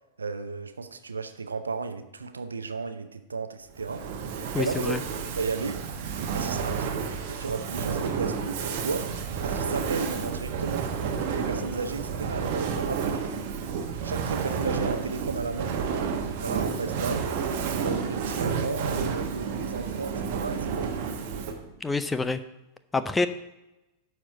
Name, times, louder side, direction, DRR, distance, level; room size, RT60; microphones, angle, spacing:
voice 1, 0.2-4.1 4.6-4.9 5.4-5.8 6.3-9.1 9.4-10.9 11.3-13.3 14.0-17.3 17.7-20.9, right 4 dB, 75° right, 10 dB, 0.7 m, -34 dB
Fire, 3.8-21.7, right 6 dB, 45° right, 1.2 m, -31 dB
voice 2, 4.5-5.0 21.8-22.4 22.9-23.3, left 3 dB, 10° left, 12 dB, 0.5 m, -26 dB
11.5 x 4.5 x 6.6 m, 0.96 s
figure-of-eight pair, 90°, 0 cm